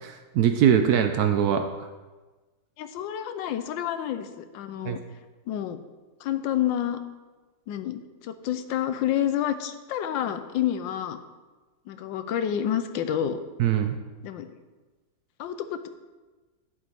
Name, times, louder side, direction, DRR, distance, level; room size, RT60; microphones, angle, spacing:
voice 1, 0.0-1.7 4.8-5.0 13.6-14.0, right 9 dB, 70° right, 7 dB, 0.9 m, -22 dB
voice 2, 2.8-5.0 5.5-5.8 6.2-7.0 7.7-11.2 11.9-13.4 14.2-14.5 15.4-15.9, left 10 dB, 90° left, 10 dB, 1.3 m, -29 dB
10.5 x 7.3 x 3.5 m, 1.2 s
omnidirectional pair, 2.0 m